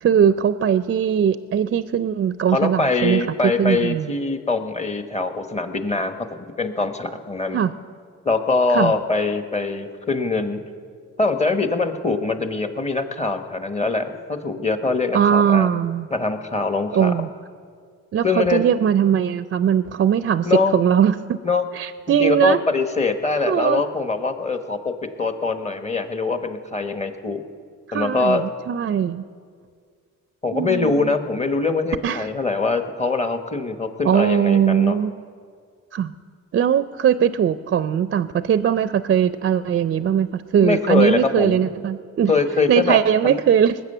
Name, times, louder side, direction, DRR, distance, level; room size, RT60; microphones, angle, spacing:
voice 1, 0.0-4.1 7.5-7.7 8.7-8.9 15.1-16.1 16.9-17.3 18.1-21.4 21.7-22.6 23.4-23.8 27.9-29.2 30.5-31.1 32.0-32.3 34.0-35.1 35.9-36.1 36.5-42.3 42.7-43.8, right 8 dB, 40° right, 13 dB, 0.5 m, -20 dB
voice 2, 2.5-6.3 6.6-7.6 8.2-10.6 11.2-15.7 16.1-17.3 18.2-18.6 20.4-20.8 21.4-21.6 22.2-27.4 27.9-28.4 30.4-35.0 40.6-41.7 42.3-43.0 43.2-43.4, left 3 dB, 20° left, 7 dB, 1.2 m, -23 dB
20.0 x 8.0 x 6.7 m, 2.1 s
cardioid pair, 90°, 30 cm